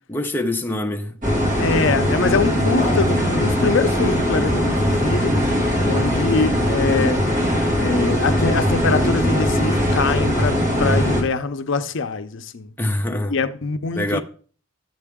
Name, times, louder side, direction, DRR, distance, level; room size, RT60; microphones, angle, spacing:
voice 1, 0.1-1.2 12.8-13.3 14.0-14.2, left 1 dB, 10° left, 0.7 m, -24 dB
sound 1, 1.2-11.2, equal, 40° right, 2.2 m, -20 dB
voice 2, 1.6-5.4 5.8-7.3 7.8-12.7 13.3-14.2, left 4 dB, 60° left, 0.6 m, -23 dB
12.0 x 7.7 x 3.6 m
head